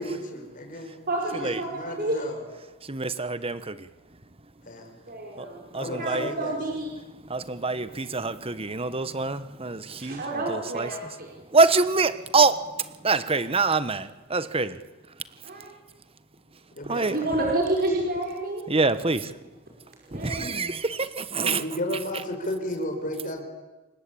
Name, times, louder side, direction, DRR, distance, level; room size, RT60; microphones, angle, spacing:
voice 1, 0.0-1.0 1.3-2.4 4.7-5.0 5.7-6.6 16.8-17.3 21.4-23.4, left 1 dB, 40° left, 4 dB, 5.9 m, -33 dB
voice 2, 1.1-2.2 5.1-6.9 10.0-11.3 15.4-15.7 16.9-18.6 20.1-20.5, right 2 dB, 45° right, -1 dB, 5.5 m, -29 dB
voice 3, 2.8-3.9 5.4-5.5 5.7-6.3 7.2-10.9 11.5-14.8 16.9-17.2 18.7-19.3 20.1-21.6, right 3 dB, 25° right, 13 dB, 1.2 m, -25 dB
28.0 x 23.5 x 8.8 m, 1.1 s
head